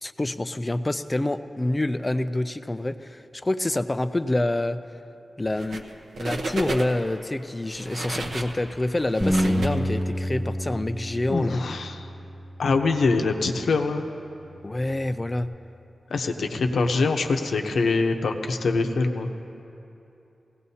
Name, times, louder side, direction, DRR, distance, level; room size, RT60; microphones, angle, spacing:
voice 1, 0.0-4.8 5.4-5.8 6.2-11.6 14.6-15.5, left 1 dB, 15° left, 11 dB, 0.3 m, -27 dB
sound 1, 5.5-5.9 6.2-7.1 7.6-10.3, right 2 dB, 65° right, 1.0 m, -33 dB
Bass guitar, 9.2-13.7 14.3-15.4, equal, ahead, 0.9 m, -30 dB
voice 2, 11.3-12.1 12.6-14.0 16.1-19.3, left 3 dB, 80° left, 4 dB, 0.8 m, -24 dB
20.0 x 17.0 x 2.8 m, 2.9 s
wide cardioid pair, 175°, 0 cm